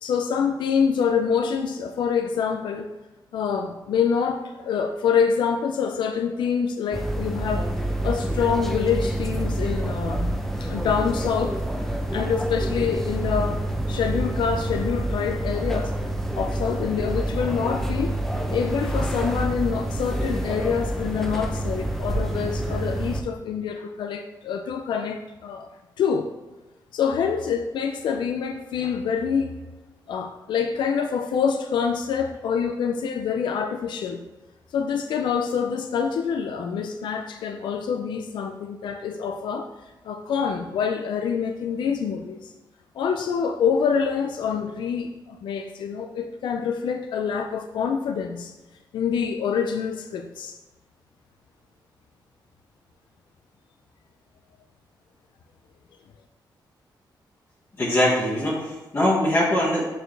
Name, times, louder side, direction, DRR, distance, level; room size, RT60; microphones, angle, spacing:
voice 1, 0.0-2.9 3.3-7.7 8.0-11.7 12.1-15.9 16.3-18.2 18.5-25.7 26.0-26.3 26.9-29.5 30.1-34.2 34.7-39.7 40.0-42.5 42.9-48.5 48.9-50.6, left 6 dB, 85° left, 6 dB, 0.4 m, -26 dB
sound 1, 6.9-23.2, right 1 dB, 5° left, 0.6 m, -27 dB
voice 2, 57.8-59.8, left 1 dB, 35° left, -7 dB, 1.3 m, -22 dB
6.5 x 4.4 x 3.3 m, 1.1 s
cardioid pair, 115°, 8 cm